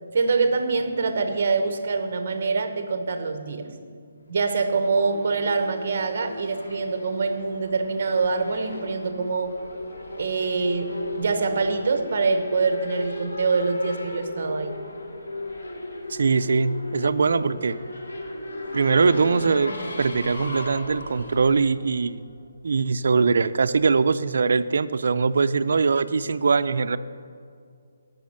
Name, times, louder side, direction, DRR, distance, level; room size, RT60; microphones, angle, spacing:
voice 1, 0.1-3.7 4.3-9.5 10.2-14.8, right 4 dB, 40° right, 8 dB, 1.0 m, -25 dB
Race car auto racing / Accelerating revving vroom, 4.4-22.5, left 1 dB, 85° left, 2.2 m, -36 dB
voice 2, 16.1-17.8 18.7-22.3 22.6-27.0, right 4 dB, 55° right, 12 dB, 0.4 m, -22 dB
17.0 x 6.2 x 6.5 m, 2.2 s
hypercardioid pair, 175°, 0 cm